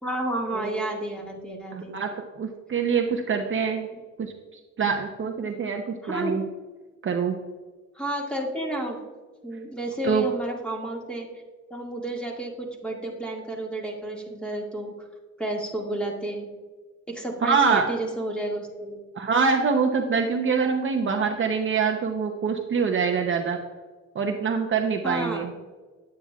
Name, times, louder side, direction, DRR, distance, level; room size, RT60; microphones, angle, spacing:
voice 1, 0.0-2.0 6.0-6.3 8.0-9.0 9.4-11.3 11.7-14.9 15.4-16.5 17.1-19.0 25.0-25.5, right 1 dB, 5° left, -1 dB, 1.9 m, -31 dB
voice 2, 1.7-3.9 4.2-4.3 4.8-6.4 7.0-7.4 10.0-10.3 17.4-17.9 19.1-23.6 24.1-25.5, right 5 dB, 40° right, 3 dB, 0.8 m, -25 dB
9.5 x 9.2 x 2.4 m, 1.4 s
cardioid pair, 90°, 30 cm